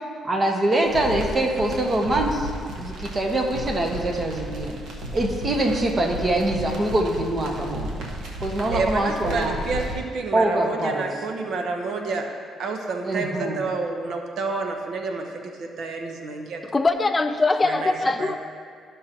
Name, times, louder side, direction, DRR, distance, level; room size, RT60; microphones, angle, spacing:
voice 1, 0.2-4.8 5.1-7.9 8.4-9.6 10.3-11.1 13.0-13.6, right 1 dB, 35° right, 1 dB, 1.3 m, -24 dB
sound 1, 0.9-10.0, equal, 85° right, 1.2 m, -34 dB
voice 2, 8.7-12.3 12.6-16.6 17.6-17.9 18.2-18.3, right 3 dB, 70° right, 3 dB, 0.8 m, -29 dB
voice 3, 16.7-18.3, left 3 dB, 25° left, 8 dB, 0.3 m, -21 dB
13.5 x 5.6 x 2.8 m, 2.2 s
cardioid pair, 90°, 0 cm